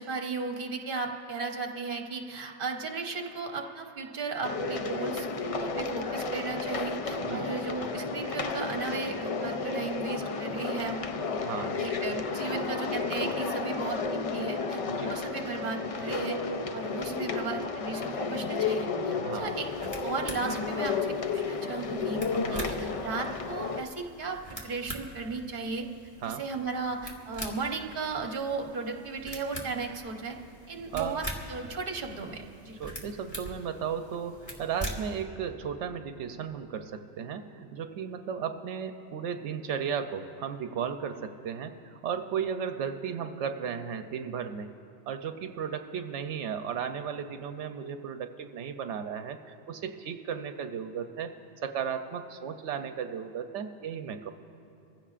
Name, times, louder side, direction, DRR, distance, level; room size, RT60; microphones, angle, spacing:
voice 1, 0.0-5.3 5.6-11.1 11.8-16.4 16.7-22.2 22.5-24.4 24.6-25.9 26.2-30.4 30.7-32.8, right 4 dB, 50° right, 3 dB, 1.2 m, -35 dB
sound 1, 4.4-23.8, left 4 dB, 50° left, 0.4 m, -32 dB
voice 2, 11.4-11.8 14.9-15.2 19.2-19.5 22.3-22.7 26.2-26.4 30.9-31.2 32.8-44.7 45.1-51.3 51.6-54.3, right 7 dB, 90° right, 7 dB, 0.9 m, -35 dB
sound 2, 19.4-35.2, equal, 15° left, 1.7 m, -44 dB
25.5 x 15.5 x 2.5 m, 2.7 s
omnidirectional pair, 1.2 m